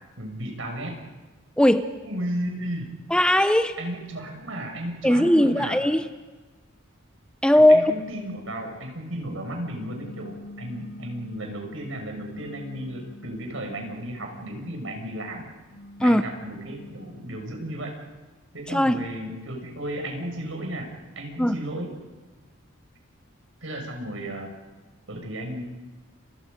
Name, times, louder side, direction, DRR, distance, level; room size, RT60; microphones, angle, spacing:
voice 1, 0.2-1.0 2.0-3.0 3.8-5.8 7.5-15.5 16.0-17.9 18.5-20.9 21.2-21.9 23.6-24.5 25.1-25.6, right 1 dB, 75° right, 3 dB, 6.3 m, -34 dB
voice 2, 1.6-1.9 3.1-3.8 5.0-6.1 7.4-7.8 16.0-16.2 18.7-19.0 21.4-21.6, left 1 dB, 5° left, 9 dB, 0.7 m, -18 dB
sound 1, 9.6-11.7 12.3-15.0 15.6-17.8, left 1 dB, 85° left, 3.0 m, -45 dB
29.5 x 25.5 x 5.3 m, 1.3 s
head